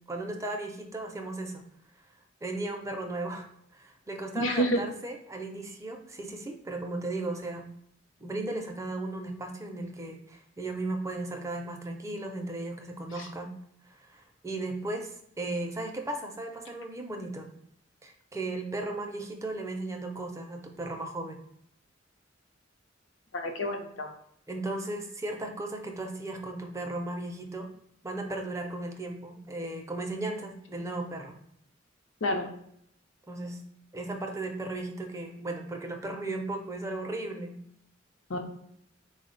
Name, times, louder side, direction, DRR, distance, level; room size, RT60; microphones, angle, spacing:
voice 1, 0.1-1.6 2.4-3.5 3.7-7.6 8.2-13.5 13.9-17.5 18.0-21.4 24.5-27.7 28.0-31.4 33.3-33.6 33.9-37.6, right 2 dB, 15° right, 3 dB, 0.4 m, -36 dB
voice 2, 4.3-4.8 23.3-24.1 32.2-32.5 38.3-38.4, equal, 80° left, 3 dB, 0.6 m, -28 dB
4.2 x 2.1 x 3.8 m, 0.71 s
head